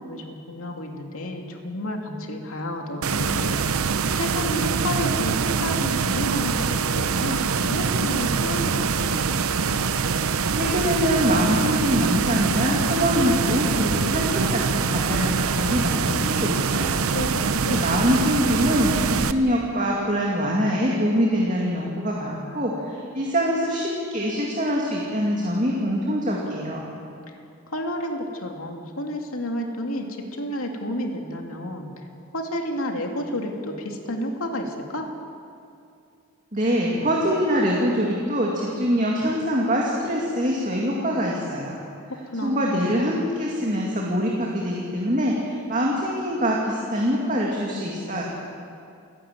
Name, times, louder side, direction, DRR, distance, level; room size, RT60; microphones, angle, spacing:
voice 1, 0.0-3.6 4.1-9.2 17.1-18.0 27.3-27.4 27.7-30.1 30.3-32.1 32.3-35.1 42.2-42.9, equal, 80° left, 2 dB, 2.7 m, -31 dB
sound 1, 3.0-19.3, right 5 dB, 80° right, 0.8 m, -24 dB
voice 2, 10.5-17.0 17.7-26.8 36.5-41.8 42.4-48.2, equal, 35° right, -3 dB, 2.6 m, -24 dB
29.0 x 11.5 x 9.4 m, 2.5 s
head